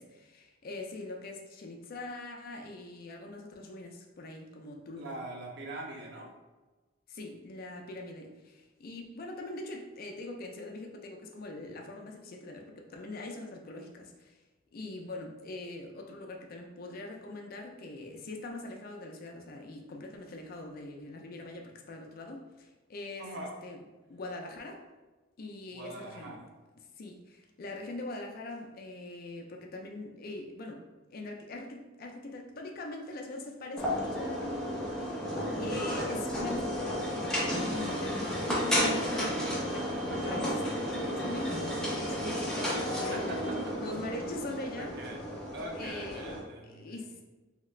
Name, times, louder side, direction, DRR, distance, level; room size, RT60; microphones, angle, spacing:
voice 1, 0.0-5.2 7.1-14.4 14.7-23.3 23.6-23.8 24.1-24.8 25.4-26.4 27.0-30.9 31.1-35.2 35.6-37.2 37.5-45.0 45.7-46.3 46.7-47.2, left 2 dB, 50° left, 2 dB, 0.4 m, -42 dB
voice 2, 5.0-6.3 23.2-23.5 25.7-26.5 42.9-43.7 44.7-45.2 45.5-47.0, right 1 dB, 60° right, 0 dB, 0.6 m, -42 dB
sound 1, 33.8-46.4, equal, 5° left, 0.7 m, -32 dB
2.8 x 2.4 x 3.1 m, 1.2 s
head